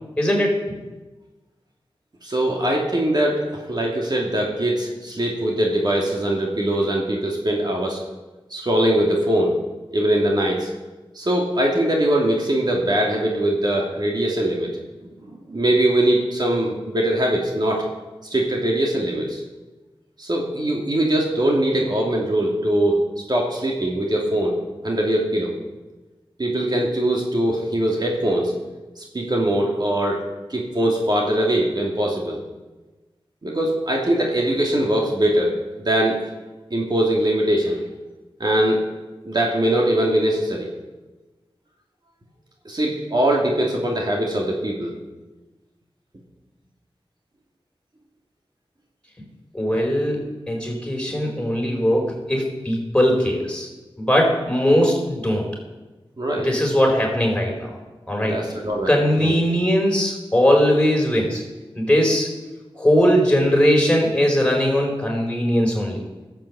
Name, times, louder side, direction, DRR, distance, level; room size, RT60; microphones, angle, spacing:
voice 1, 0.2-0.6 49.5-53.7 54.0-55.5 56.4-57.8 58.1-58.4 58.9-61.4 61.7-62.3 62.8-66.0, equal, 10° left, 0 dB, 4.6 m, -20 dB
voice 2, 2.2-8.0 8.5-9.6 9.9-10.7 11.1-14.7 15.2-17.8 18.3-19.4 20.2-23.0 23.3-24.6 24.8-25.5 26.4-28.5 29.0-30.2 30.5-32.4 33.4-35.5 35.8-36.2 36.7-37.8 38.4-38.8 39.2-40.7 42.6-45.0 56.2-56.5 58.2-58.9 59.2-59.4, right 1 dB, 50° right, -1 dB, 2.5 m, -21 dB
15.0 x 7.6 x 7.6 m, 1.2 s
wide cardioid pair, 60°, 10 cm